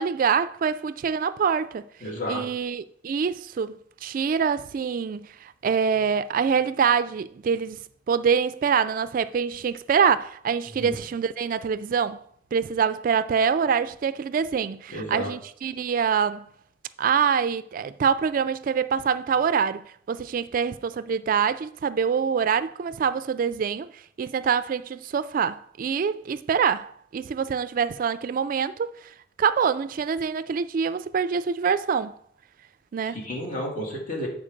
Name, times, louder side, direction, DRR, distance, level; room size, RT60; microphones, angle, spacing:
voice 1, 0.0-1.9 2.3-7.8 8.1-12.2 12.5-16.4 17.0-23.9 24.2-28.9 29.4-32.1 32.9-33.2, right 6 dB, 50° right, 0.3 m, -25 dB
voice 2, 2.0-2.5 10.6-11.0 14.9-15.3 33.0-34.3, left 1 dB, 45° left, 2.9 m, -32 dB
8.8 x 4.8 x 5.2 m
head